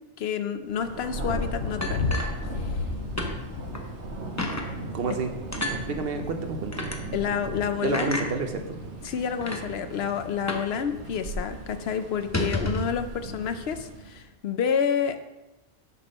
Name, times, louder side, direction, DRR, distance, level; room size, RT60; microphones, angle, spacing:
voice 1, 0.2-2.1 2.6-2.7 7.1-8.2 9.0-15.3, left 7 dB, 70° left, 9 dB, 0.8 m, -29 dB
Thunder, 0.7-14.3, right 2 dB, 90° right, 1.4 m, -38 dB
Thunder 2, 1.2-5.0 6.3-6.4, left 4 dB, 90° left, 1.2 m, -32 dB
sound 1, 1.8-2.9 3.2-3.3 3.7-3.9 4.4-4.7 5.5-5.8 6.7-7.0 7.9-8.3 9.0-9.1 9.4-9.6 10.5-10.7 11.0-11.1 11.4-11.6 12.2-12.9, left 1 dB, 15° left, 0.8 m, -30 dB
voice 2, 4.9-5.3 5.9-6.9 7.8-8.8, right 4 dB, 60° right, 6 dB, 1.0 m, -30 dB
6.7 x 6.1 x 5.3 m, 1.0 s
omnidirectional pair, 1.1 m